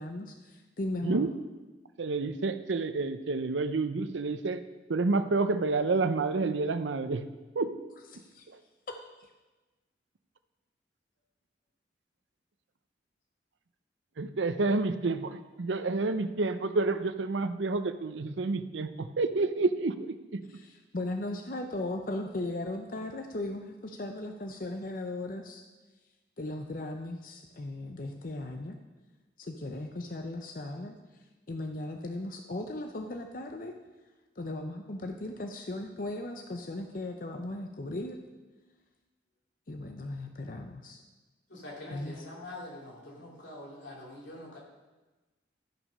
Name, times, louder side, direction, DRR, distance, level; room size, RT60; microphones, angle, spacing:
voice 1, 0.0-1.3 8.1-8.5 8.9-9.0 20.5-25.7 26.4-28.8 29.4-30.9 31.5-33.7 34.4-38.2 39.7-41.0 41.9-42.2, left 2 dB, 50° left, 4 dB, 0.6 m, -37 dB
voice 2, 2.0-4.6 4.9-7.2 7.5-7.8 14.2-19.9 20.3-20.4, right 3 dB, 90° right, 11 dB, 0.6 m, -29 dB
voice 3, 41.5-44.6, left 1 dB, 90° left, -4 dB, 3.0 m, -45 dB
13.0 x 5.9 x 5.4 m, 1.2 s
head